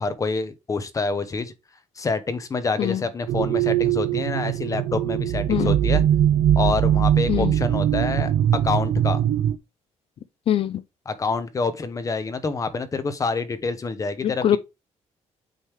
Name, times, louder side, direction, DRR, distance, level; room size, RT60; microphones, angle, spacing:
voice 1, 0.0-1.5 2.0-6.0 6.6-9.2 11.1-14.6, left 4 dB, 25° left, 0.8 m, -27 dB
sound 1, 3.3-9.6, right 11 dB, 80° right, 0.4 m, -21 dB
voice 2, 10.5-10.8 14.2-14.6, left 10 dB, 50° left, 0.4 m, -22 dB
8.8 x 3.2 x 3.4 m
cardioid pair, 140°, 12 cm